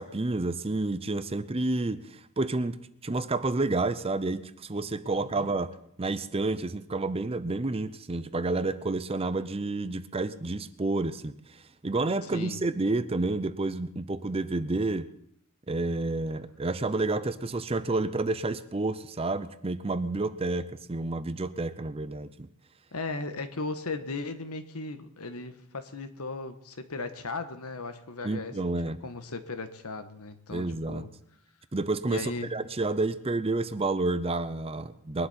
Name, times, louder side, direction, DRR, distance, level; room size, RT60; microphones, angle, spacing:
voice 1, 0.0-2.8 3.0-15.1 15.7-22.5 28.2-29.0 30.5-31.1 31.7-35.3, right 2 dB, 25° right, 13 dB, 0.6 m, -30 dB
voice 2, 5.1-5.5 12.3-12.6 22.9-28.8 29.0-31.1 32.1-32.5, left 3 dB, 85° left, 9 dB, 1.4 m, -37 dB
21.5 x 11.5 x 4.3 m, 0.72 s
head